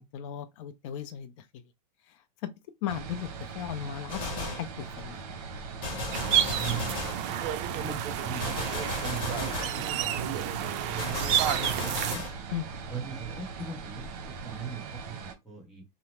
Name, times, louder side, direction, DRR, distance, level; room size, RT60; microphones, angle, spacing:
voice 1, 0.0-1.6 2.1-2.5 2.8-3.3 3.5-5.2 12.5-12.6, left 10 dB, 50° left, 0.5 m, -37 dB
sound 1, 2.9-15.3, right 5 dB, 60° right, 0.8 m, -41 dB
Gunshot gunfire, 4.1-4.7 5.8-7.3 8.4-9.8 11.0-12.4, left 2 dB, 25° left, 1.2 m, -35 dB
sound 2, 6.1-12.1, right 10 dB, 45° right, 0.4 m, -30 dB
voice 2, 6.6-6.9 7.5-12.2 12.9-15.8, right 5 dB, ahead, 0.9 m, -40 dB
2.8 x 2.0 x 3.1 m
hypercardioid pair, 135°, 21 cm